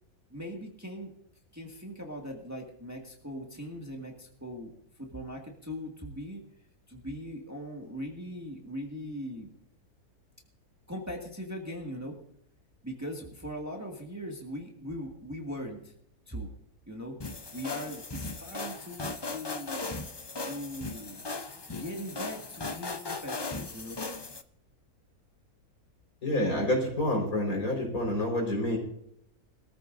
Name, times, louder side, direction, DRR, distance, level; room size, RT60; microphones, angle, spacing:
voice 1, 0.3-1.1 1.5-6.4 6.9-9.5 10.9-12.1 12.8-15.9 16.3-16.5 16.9-17.2 17.5-19.9 20.4-21.2 21.7-24.0, equal, 10° right, 0 dB, 1.9 m, -40 dB
sound 1, 17.2-24.4, left 3 dB, 35° left, 0.4 m, -38 dB
voice 2, 26.2-28.8, left 1 dB, 65° left, 0 dB, 5.3 m, -28 dB
22.0 x 14.0 x 2.6 m, 0.71 s
omnidirectional pair, 1.6 m